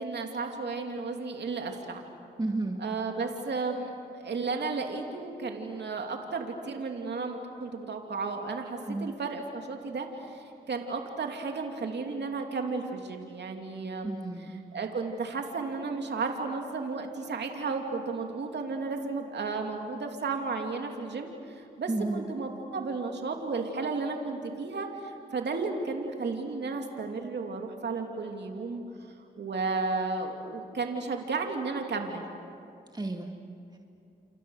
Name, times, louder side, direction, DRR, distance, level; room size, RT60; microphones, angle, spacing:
voice 1, 0.0-2.0 2.8-14.1 14.4-32.3, right 4 dB, 60° right, 3 dB, 2.9 m, -33 dB
voice 2, 2.4-2.8 8.9-9.1 14.0-14.6 21.9-22.3 32.9-33.3, right 2 dB, 20° right, 2 dB, 2.3 m, -32 dB
30.0 x 28.0 x 6.6 m, 2.6 s
supercardioid pair, 40°, 20 cm